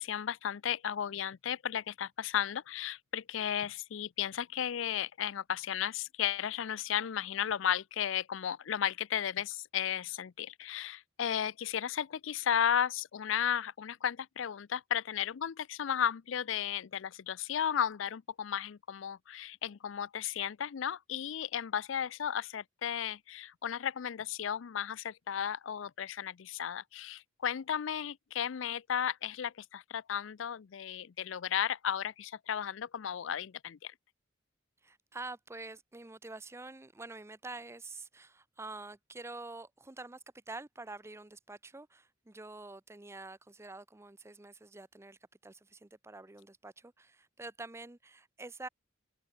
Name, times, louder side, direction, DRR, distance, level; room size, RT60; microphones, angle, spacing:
voice 1, 0.0-33.9, left 9 dB, 70° left, 0.4 m, -34 dB
voice 2, 34.8-40.2 40.5-45.2 45.4-48.7, right 3 dB, 15° right, 0.6 m, -47 dB
head